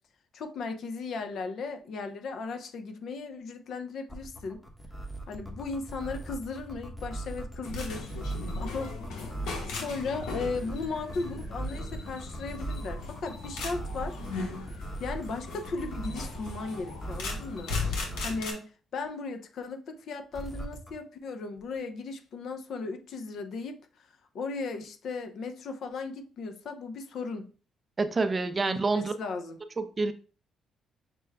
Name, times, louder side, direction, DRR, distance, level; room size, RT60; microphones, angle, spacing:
voice 1, 0.3-4.6 5.3-8.2 8.6-8.9 9.7-14.2 15.0-24.1 24.3-27.5 28.6-29.6, left 4 dB, 65° left, 0.6 m, -36 dB
sound 1, 4.1-18.5 20.3-20.9, right 2 dB, 10° left, 0.8 m, -39 dB
sound 2, 7.6-18.5, left 3 dB, 90° left, 1.0 m, -38 dB
voice 2, 28.0-29.1 29.8-30.1, right 3 dB, 30° right, 0.5 m, -27 dB
5.9 x 2.2 x 3.4 m
cardioid pair, 90°, 0 cm